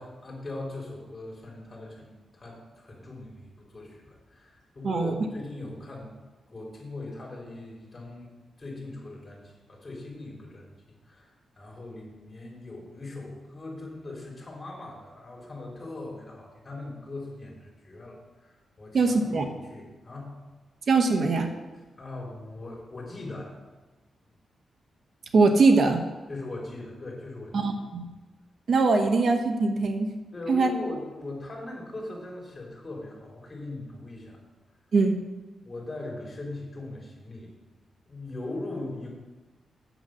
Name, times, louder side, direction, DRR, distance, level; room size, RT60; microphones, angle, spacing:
voice 1, 0.0-6.1 6.5-8.3 8.6-10.8 11.1-20.3 22.0-23.6 26.3-27.7 30.3-34.4 35.6-37.5 38.0-39.1, left 2 dB, 30° left, -2 dB, 3.6 m, -40 dB
voice 2, 18.9-19.5 20.9-21.5 25.3-26.0 27.5-28.1 28.7-30.1 30.5-30.7 34.9-35.2, right 3 dB, 55° right, 6 dB, 1.0 m, -22 dB
8.1 x 7.3 x 6.3 m, 1.2 s
cardioid pair, 110°, 0 cm